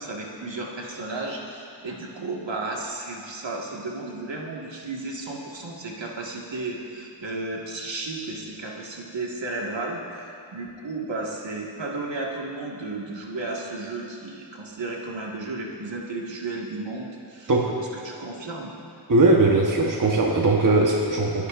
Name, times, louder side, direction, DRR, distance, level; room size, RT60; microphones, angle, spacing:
voice 1, 0.0-17.5 17.9-18.7, right 2 dB, 60° right, -2 dB, 1.9 m, -33 dB
voice 2, 19.1-21.5, right 2 dB, 40° right, -1 dB, 1.2 m, -19 dB
29.5 x 10.5 x 2.6 m, 2.4 s
wide cardioid pair, 70°, 49 cm